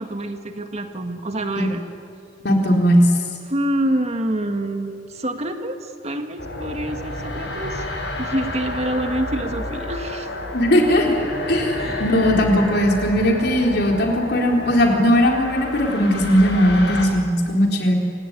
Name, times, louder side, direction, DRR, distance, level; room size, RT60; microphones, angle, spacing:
voice 1, 0.0-1.8 3.4-7.9 8.2-10.3 11.8-12.2, right 1 dB, 35° right, 6 dB, 1.8 m, -27 dB
voice 2, 2.4-3.1 10.5-17.9, equal, 65° left, 1 dB, 4.0 m, -18 dB
sound 1, 6.4-17.0, left 1 dB, 90° left, 7.0 m, -30 dB
26.5 x 17.0 x 9.8 m, 2.5 s
head